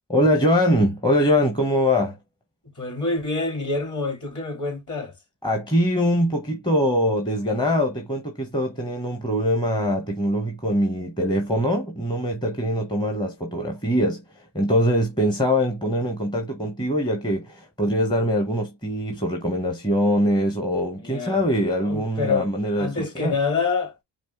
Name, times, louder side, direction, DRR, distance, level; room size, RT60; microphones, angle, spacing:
voice 1, 0.1-2.2 5.4-14.2 14.5-23.3, equal, 10° left, 1.0 m, -23 dB
voice 2, 2.8-5.1 21.0-21.4 21.8-22.5 22.7-23.9, left 4 dB, 40° left, 3.0 m, -26 dB
5.0 x 3.1 x 3.5 m
cardioid pair, 95°, 46 cm